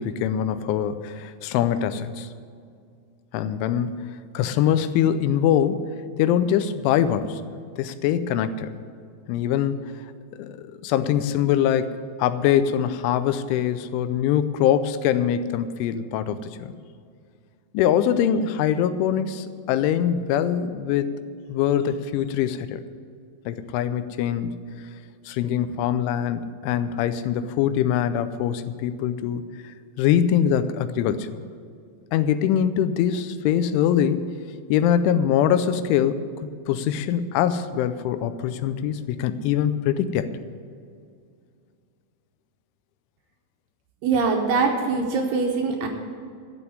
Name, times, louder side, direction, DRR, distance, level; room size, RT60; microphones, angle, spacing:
voice 1, 0.0-2.3 3.3-5.8 6.2-7.4 7.8-8.7 9.3-9.8 10.4-16.7 17.7-21.1 21.5-22.8 23.5-24.5 25.3-29.4 30.0-31.3 32.1-34.2 34.7-36.2 36.7-40.3, left 9 dB, 90° left, 12 dB, 3.1 m, -23 dB
voice 2, 44.0-45.9, right 4 dB, 75° right, 2 dB, 2.6 m, -23 dB
12.5 x 7.0 x 9.8 m, 2.2 s
omnidirectional pair, 5.5 m